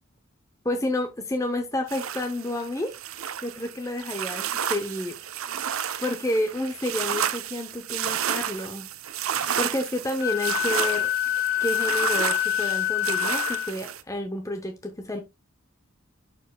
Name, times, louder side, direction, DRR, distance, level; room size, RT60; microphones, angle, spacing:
voice 1, 0.6-3.0 3.4-5.2 6.0-8.9 9.3-11.1 11.6-15.2, left 1 dB, 15° left, 0.6 m, -30 dB
sound 1, 1.9-14.0, right 9 dB, 80° right, 0.6 m, -31 dB
Wind instrument woodwind instrument, 10.2-13.7, left 14 dB, 55° left, 0.8 m, -26 dB
11.0 x 4.6 x 2.2 m
head